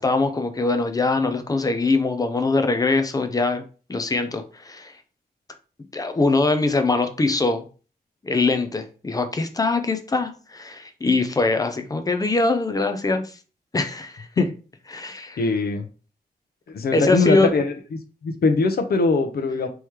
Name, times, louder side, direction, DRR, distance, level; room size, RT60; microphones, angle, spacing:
voice 1, 0.0-3.6 3.9-4.9 5.9-7.7 8.2-13.2 13.7-14.4 14.9-15.4 16.9-17.5, left 3 dB, 20° left, 8 dB, 0.5 m, -22 dB
voice 2, 15.4-15.9 16.7-17.7 18.2-19.7, left 3 dB, 70° left, 6 dB, 0.8 m, -21 dB
4.6 x 3.0 x 3.5 m, 0.36 s
wide cardioid pair, 170°, 17 cm